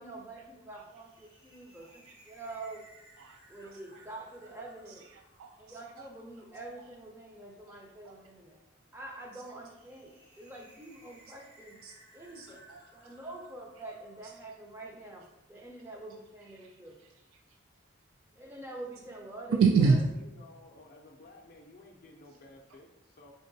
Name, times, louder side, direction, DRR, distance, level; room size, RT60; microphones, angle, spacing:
voice 1, 0.0-2.9 3.5-5.1 5.6-8.6 8.9-11.8 12.1-12.6 12.9-17.0 18.3-19.6, right 2 dB, 10° right, 0 dB, 0.5 m, -46 dB
sound 1, 0.7-15.1, right 1 dB, 60° right, 1.4 m, -61 dB
voice 2, 1.8-2.1 2.5-2.6 3.2-4.0 4.9-6.1 6.8-6.9 7.7-8.1 9.3-9.4 11.8-12.0 12.3-12.8 14.2-14.3 16.4-17.6 19.5-20.0, right 5 dB, 90° right, 3 dB, 0.3 m, -31 dB
voice 3, 20.3-23.3, left 2 dB, 45° left, 0 dB, 0.4 m, -54 dB
4.2 x 3.7 x 2.6 m, 0.96 s
head